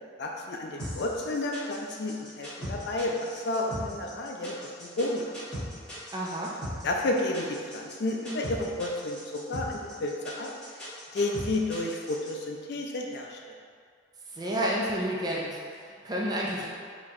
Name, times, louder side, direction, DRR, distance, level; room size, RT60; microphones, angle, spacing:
voice 1, 0.2-5.3 5.6-5.8 6.8-10.5 11.1-13.4, left 2 dB, 60° left, 1 dB, 0.4 m, -31 dB
sound 1, 0.8-12.3, equal, 5° left, 1.3 m, -39 dB
voice 2, 6.1-6.5 14.3-16.7, equal, 20° right, -4 dB, 0.4 m, -30 dB
4.2 x 2.9 x 2.5 m, 2.1 s
head